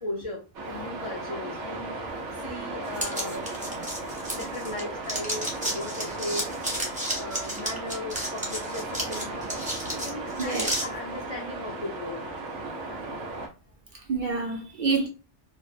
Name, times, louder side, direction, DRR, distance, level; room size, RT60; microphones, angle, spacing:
voice 1, 0.0-3.5 4.3-6.5 7.1-9.4 9.8-12.3, left 1 dB, 55° left, 0.3 m, -37 dB
sound 1, 0.5-13.5, right 2 dB, 85° right, 1.0 m, -36 dB
sound 2, 2.9-4.8 5.1-10.8, equal, 10° right, 0.6 m, -32 dB
voice 2, 3.7-4.0 10.4-10.7 14.1-15.1, right 4 dB, 55° right, 0.7 m, -28 dB
2.5 x 2.1 x 2.3 m
omnidirectional pair, 1.2 m